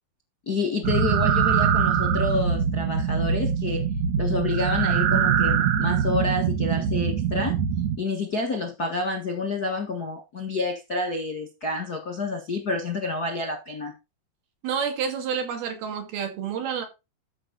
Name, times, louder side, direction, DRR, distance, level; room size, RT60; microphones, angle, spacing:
voice 1, 0.5-3.8 4.2-7.6 8.0-13.9, left 3 dB, 50° left, 1.2 m, -29 dB
sound 1, 0.8-8.0, right 7 dB, 60° right, 2.2 m, -23 dB
voice 2, 14.6-16.9, right 7 dB, 80° right, 4.3 m, -29 dB
13.5 x 5.8 x 4.0 m
omnidirectional pair, 4.3 m